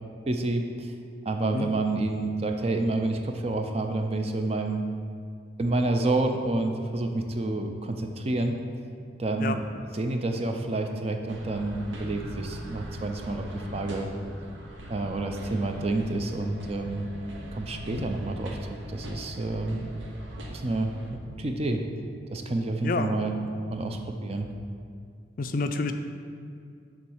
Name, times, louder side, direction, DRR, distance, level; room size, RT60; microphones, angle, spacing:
voice 1, 0.3-0.9 1.3-4.8 5.6-8.6 9.2-9.7 9.9-13.4 13.7-14.1 14.9-17.1 17.5-19.9 20.5-21.8 22.3-23.3 23.7-24.5, right 2 dB, 30° right, 4 dB, 0.4 m, -29 dB
sound 1, 11.3-21.1, equal, 80° right, 1.0 m, -41 dB
voice 2, 22.8-23.2 25.4-25.9, left 3 dB, 45° left, 7 dB, 0.4 m, -29 dB
7.1 x 3.5 x 6.3 m, 2.3 s
head